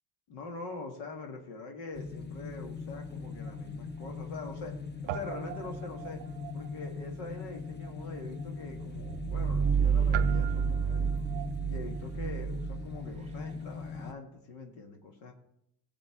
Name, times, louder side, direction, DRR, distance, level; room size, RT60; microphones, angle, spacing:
voice 1, 0.3-6.2 6.5-11.1 11.7-15.3, left 3 dB, 75° left, 2 dB, 1.9 m, -44 dB
sound 1, 1.9-14.1, left 4 dB, 20° left, 1.0 m, -41 dB
Guitar, 3.0-4.8 5.0-13.7, right 15 dB, 75° right, 0.7 m, -45 dB
sound 2, 8.8-13.5, right 6 dB, 15° right, 0.3 m, -29 dB
15.5 x 7.8 x 3.7 m, 0.75 s
supercardioid pair, 80°, 50 cm